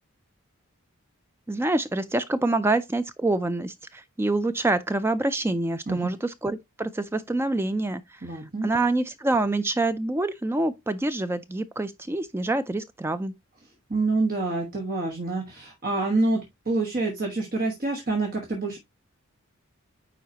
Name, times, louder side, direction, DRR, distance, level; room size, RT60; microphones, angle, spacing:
voice 1, 1.5-13.3, right 2 dB, 10° right, 0.3 m, -26 dB
voice 2, 8.2-8.7 13.9-18.8, right 2 dB, 40° right, 1.3 m, -27 dB
9.3 x 4.1 x 2.8 m
head